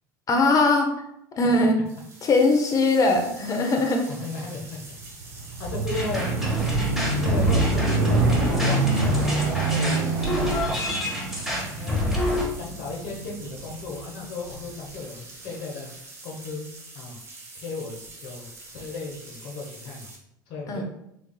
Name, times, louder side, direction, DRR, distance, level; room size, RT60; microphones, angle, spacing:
voice 1, 0.3-0.9 1.3-1.7 2.2-4.1 20.7-20.8, left 2 dB, 35° left, 3 dB, 0.8 m, -20 dB
sound 1, 1.9-20.2, right 2 dB, 25° right, 1.2 m, -45 dB
voice 2, 4.1-4.8 5.6-6.3 7.1-10.7 11.7-12.1 12.5-15.9 16.2-16.7 16.9-17.2 17.5-20.1 20.5-20.8, left 3 dB, 60° left, -1 dB, 1.0 m, -35 dB
sound 2, 5.1-13.9 14.5-14.6, right 3 dB, 65° right, 1.1 m, -26 dB
sound 3, 5.9-12.4, left 1 dB, 5° right, 1.2 m, -27 dB
3.3 x 3.3 x 2.3 m, 0.78 s
hypercardioid pair, 75°, 10 cm